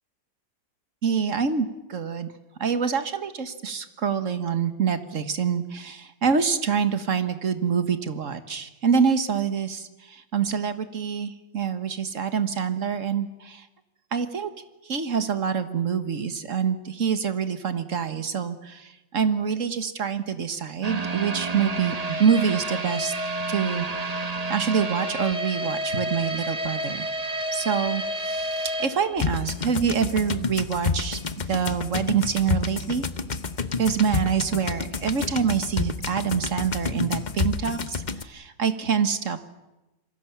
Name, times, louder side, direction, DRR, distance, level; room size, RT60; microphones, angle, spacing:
voice 1, 1.0-2.3 2.6-13.6 14.1-14.5 14.9-23.1 23.5-24.2 24.5-27.1 27.5-31.2 31.5-33.1 33.8-39.5, right 6 dB, 45° right, 10 dB, 1.8 m, -26 dB
sound 1, 20.8-29.8 30.1-30.2 30.7-30.8, right 1 dB, 25° right, 1.0 m, -30 dB
sound 2, 29.2-38.2, left 4 dB, 35° left, 0.7 m, -29 dB
27.0 x 23.5 x 7.3 m, 1.0 s
omnidirectional pair, 2.0 m